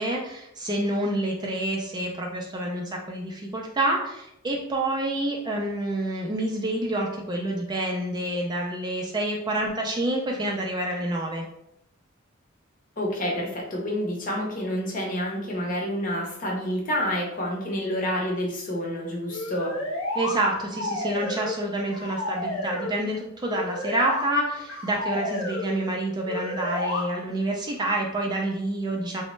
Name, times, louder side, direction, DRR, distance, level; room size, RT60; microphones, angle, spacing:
voice 1, 0.0-11.4 20.2-29.2, right 1 dB, 20° right, -1 dB, 0.3 m, -28 dB
voice 2, 13.0-19.7, equal, 40° left, -2 dB, 0.7 m, -28 dB
sound 1, 19.3-20.4 20.7-21.6 21.9-23.0 23.4-24.2 24.7-25.7 26.2-27.0, left 1 dB, 75° left, 0.7 m, -31 dB
3.1 x 2.0 x 3.0 m, 0.79 s
head